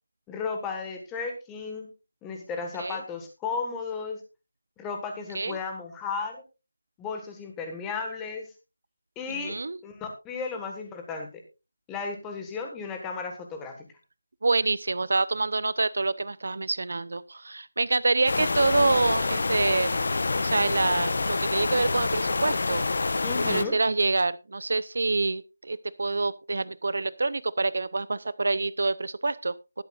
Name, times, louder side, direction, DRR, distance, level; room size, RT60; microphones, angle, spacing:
voice 1, 0.3-1.9 2.2-4.2 4.8-6.4 7.0-8.5 9.1-9.6 9.8-11.3 11.9-13.8 23.2-23.8, left 5 dB, 10° left, 4 dB, 1.5 m, -34 dB
voice 2, 9.3-9.8 14.4-22.8 23.4-29.6, right 3 dB, 60° right, 19 dB, 0.6 m, -26 dB
sound 1, 18.3-23.6, left 3 dB, 50° left, 0.9 m, -27 dB
20.0 x 7.9 x 2.4 m, 0.28 s
figure-of-eight pair, 175°, 0 cm